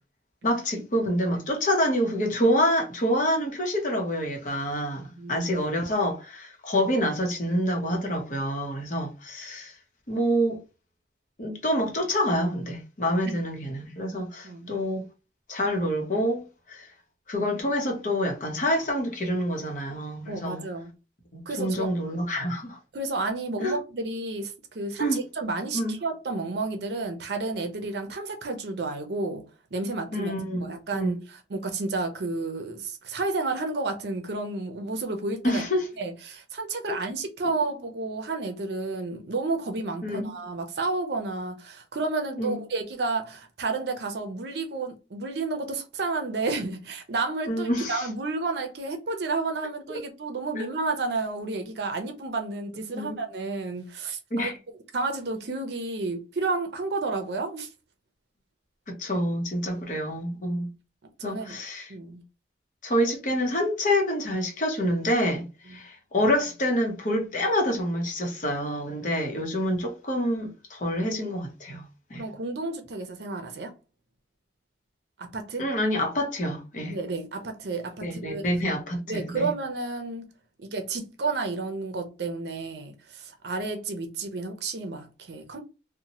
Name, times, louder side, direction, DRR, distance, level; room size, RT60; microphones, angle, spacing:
voice 1, 0.4-9.7 10.1-10.6 11.4-15.0 15.5-16.9 17.3-20.6 21.3-22.8 23.6-23.8 25.0-25.2 25.7-25.9 30.1-31.2 35.4-35.9 36.9-37.0 37.4-37.6 40.0-40.3 42.4-42.6 47.5-48.1 50.5-50.6 52.9-53.2 54.3-54.6 58.9-60.7 61.2-61.9 62.8-71.8 72.1-72.2 75.6-76.9 78.0-79.5, equal, 45° left, 0.8 m, -27 dB
voice 2, 5.2-5.5 13.3-13.4 14.4-14.8 20.3-20.9 21.5-21.9 22.9-29.4 29.7-30.3 30.6-35.6 36.0-54.5 54.9-57.7 59.7-59.8 60.5-60.6 61.2-61.6 61.9-62.2 65.7-65.8 72.2-73.7 75.2-75.7 76.9-78.4 79.1-80.3 80.6-85.6, right 3 dB, 70° right, 0.6 m, -31 dB
2.7 x 2.1 x 2.9 m
head